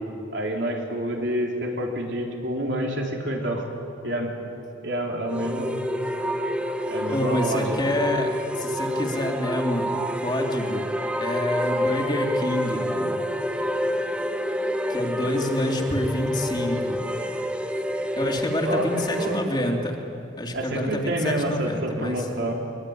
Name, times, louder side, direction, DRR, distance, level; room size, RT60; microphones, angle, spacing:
voice 1, 0.3-3.7 4.0-4.3 4.8-5.8 6.9-7.8 18.6-19.4 20.5-22.5, right 1 dB, 70° right, 0 dB, 4.3 m, -28 dB
sound 1, 5.3-19.5, equal, 5° right, 1.1 m, -28 dB
voice 2, 7.1-10.8 11.2-13.2 14.9-17.0 18.2-20.0 20.4-22.3, left 1 dB, 25° left, 1 dB, 2.7 m, -27 dB
23.0 x 23.0 x 9.9 m, 2.7 s
head